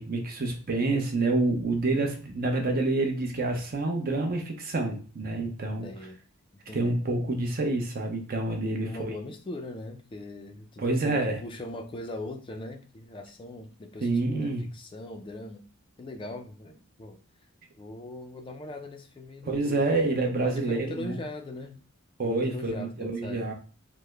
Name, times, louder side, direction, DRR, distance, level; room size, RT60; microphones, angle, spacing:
voice 1, 0.0-5.9 6.7-9.1 10.8-11.4 14.0-14.7 19.4-21.2 22.2-23.5, right 2 dB, 45° right, 3 dB, 0.7 m, -28 dB
voice 2, 5.7-6.2 6.7-7.0 8.8-15.6 16.0-17.2 17.8-21.8 22.2-23.5, left 1 dB, 25° left, 5 dB, 0.4 m, -41 dB
3.3 x 2.0 x 3.3 m, 0.37 s
head